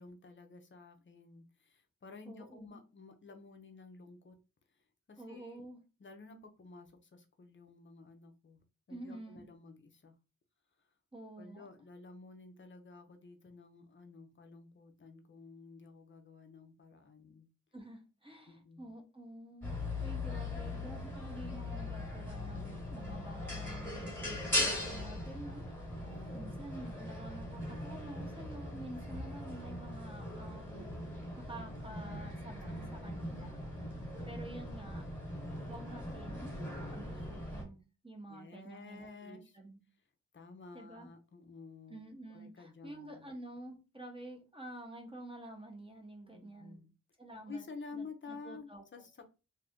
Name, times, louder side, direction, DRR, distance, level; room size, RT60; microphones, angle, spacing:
voice 1, 0.0-4.4 5.1-5.6 6.0-8.6 8.9-10.1 11.4-17.5 18.5-18.9 26.1-26.9 32.7-33.8 38.3-39.5 40.3-43.3 46.3-46.9 47.5-49.2, left 4 dB, 35° left, 5 dB, 0.6 m, -52 dB
voice 2, 2.2-2.8 5.2-5.8 8.9-9.5 11.1-11.7 17.7-19.7 20.0-25.9 26.3-30.9 31.4-33.6 34.3-35.1 35.7-36.5 36.9-39.8 40.7-41.1 41.9-46.8 47.2-47.6 47.9-48.8, right 1 dB, 15° right, 2 dB, 0.7 m, -49 dB
sound 1, 19.6-37.6, left 1 dB, 5° left, 1.2 m, -40 dB
2.6 x 2.5 x 3.5 m, 0.31 s
wide cardioid pair, 115°, 34 cm